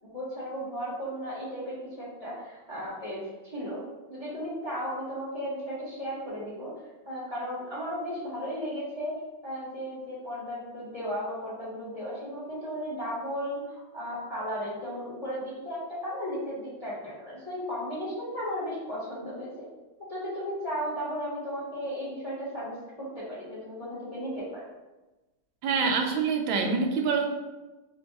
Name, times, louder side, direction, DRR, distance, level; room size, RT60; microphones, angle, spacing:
voice 1, 0.0-3.8 4.1-6.7 7.0-19.7 20.1-24.6, equal, 25° left, -8 dB, 1.1 m, -35 dB
voice 2, 25.6-27.3, right 5 dB, 90° right, 2 dB, 1.4 m, -26 dB
4.5 x 2.3 x 4.0 m, 1.1 s
omnidirectional pair, 2.1 m